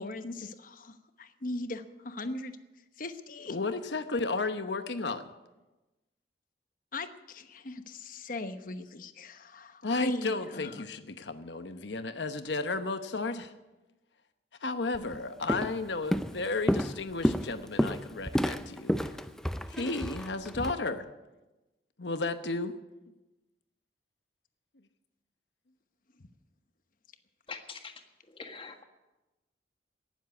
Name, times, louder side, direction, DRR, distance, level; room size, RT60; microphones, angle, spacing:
voice 1, 0.0-2.6 3.0-3.6 6.9-10.7, left 2 dB, 50° left, 9 dB, 1.0 m, -39 dB
voice 2, 3.5-5.3 9.8-13.5 14.6-19.2 19.7-21.1 22.0-22.7, left 3 dB, 80° left, 9 dB, 1.0 m, -33 dB
Walk footsteps, 14.9-15.2 15.5-15.8 16.1-20.7, equal, 5° left, 0.5 m, -30 dB
voice 3, 27.5-27.8 28.4-28.8, left 4 dB, 30° left, 4 dB, 1.7 m, -42 dB
18.0 x 7.4 x 9.3 m, 1.1 s
head